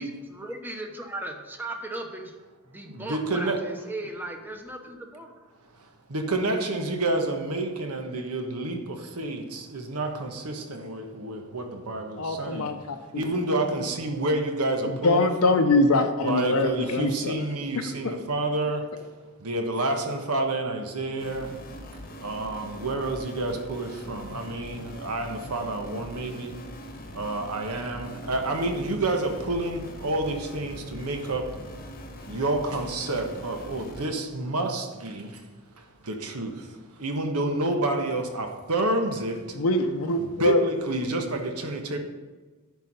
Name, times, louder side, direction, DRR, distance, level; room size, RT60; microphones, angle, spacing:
voice 1, 0.0-2.4 2.6-5.4, right 1 dB, 10° right, 0.9 m, -37 dB
voice 2, 2.8-3.6 6.1-12.7 13.1-15.6 16.2-19.0 19.4-21.6 21.9-26.6 27.1-31.6 32.3-35.4 35.8-39.6 40.2-42.0, right 2 dB, 85° right, 1.2 m, -29 dB
voice 3, 12.2-13.2 14.8-17.3 18.0-18.1 39.5-40.6, left 2 dB, 80° left, 0.7 m, -23 dB
sound 1, 21.2-34.1, left 1 dB, 40° left, 1.0 m, -42 dB
10.5 x 4.7 x 5.5 m
head